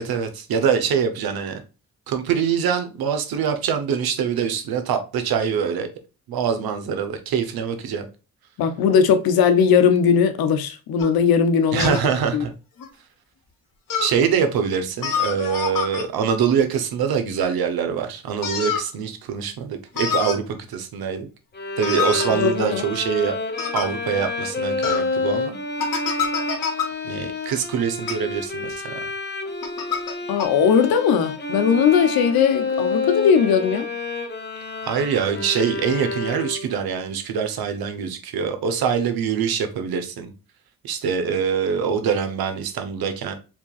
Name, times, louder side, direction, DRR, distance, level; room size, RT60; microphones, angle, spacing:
voice 1, 0.0-1.6 2.1-5.9 6.3-8.1 11.7-12.5 14.0-21.3 21.8-23.3 23.7-25.6 27.0-29.0 34.8-40.3 40.8-43.4, right 7 dB, 80° right, 1.0 m, -24 dB
voice 2, 8.6-11.9 12.3-12.5 22.3-22.8 30.3-33.9, left 7 dB, 85° left, 0.8 m, -18 dB
sound 1, 11.0-11.1 11.8-12.1 12.8-12.9 13.9-14.1 15.0-16.0 18.4-18.9 19.9-20.4 21.8-22.3 23.6-23.9 24.8-25.0 25.8-26.9 28.0-28.1 29.6-30.1 30.4-30.5, left 7 dB, 65° left, 1.2 m, -26 dB
Bowed string instrument, 21.5-36.8, left 3 dB, 30° left, 1.0 m, -29 dB
4.6 x 3.6 x 2.4 m
cardioid pair, 70°, 36 cm